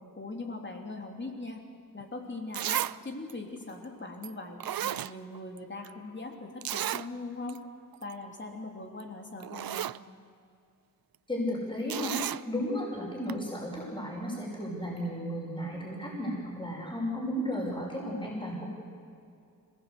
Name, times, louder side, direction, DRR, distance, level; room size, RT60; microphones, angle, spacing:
voice 1, 0.2-1.6 1.9-7.6 8.0-9.9, left 2 dB, 30° left, 2 dB, 3.2 m, -40 dB
Zipper (clothing), 2.0-2.1 2.5-3.0 3.3-3.4 4.2-4.3 4.6-5.6 5.8-5.9 6.6-7.1 7.5-7.6 7.9-8.1 9.0-9.1 9.4-10.0 11.9-12.4 13.3-13.4, right 11 dB, 85° right, 0.5 m, -33 dB
voice 2, 11.3-12.2 12.4-18.7, equal, 15° left, -2 dB, 5.7 m, -34 dB
26.5 x 18.5 x 8.2 m, 2.4 s
wide cardioid pair, 135°, 34 cm